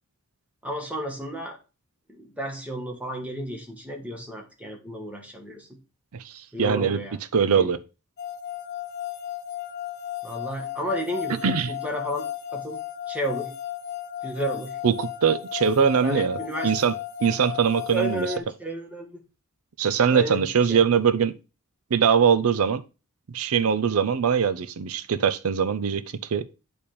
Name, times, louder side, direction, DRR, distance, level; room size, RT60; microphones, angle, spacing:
voice 1, 0.6-1.6 2.1-5.7 6.5-7.2 7.5-7.7 10.2-12.3 12.5-12.8 13.1-13.5 14.2-14.8 16.0-16.7 17.9-19.2 20.1-20.8, right 1 dB, 5° right, 1.4 m, -32 dB
voice 2, 6.6-7.0 7.3-7.8 11.4-11.7 14.8-16.4 16.6-16.9 17.2-18.3 19.8-21.3 21.9-22.8 23.3-26.0 26.3-26.4, right 7 dB, 70° right, 0.5 m, -22 dB
sound 1, 8.2-18.4, left 11 dB, 50° left, 0.5 m, -35 dB
8.5 x 3.4 x 4.2 m
head